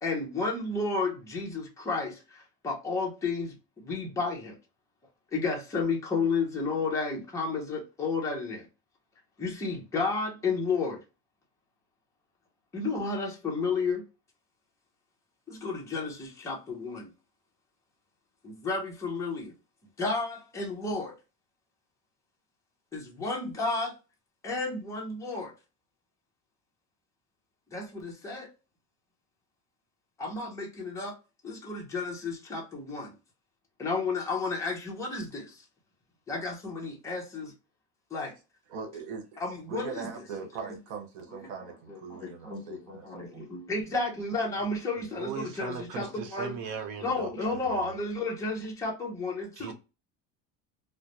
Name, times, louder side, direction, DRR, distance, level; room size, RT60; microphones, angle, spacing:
voice 1, 0.0-4.6 5.3-8.7 9.4-11.0 12.7-14.0 15.5-17.1 18.4-19.5 20.0-21.2 22.9-23.9 24.4-25.5 27.7-28.5 30.2-31.1 31.4-33.1 33.8-35.6 36.3-37.5 38.1-38.3 39.4-40.1 40.6-40.8 41.3-46.5 47.0-49.7, left 3 dB, 10° left, 0.6 m, -32 dB
voice 2, 38.7-39.4 39.7-43.4, right 5 dB, 85° right, 1.1 m, -41 dB
voice 3, 45.1-47.9 49.6-49.7, right 6 dB, 65° right, 0.8 m, -38 dB
2.3 x 2.1 x 2.8 m
cardioid pair, 155°, 32 cm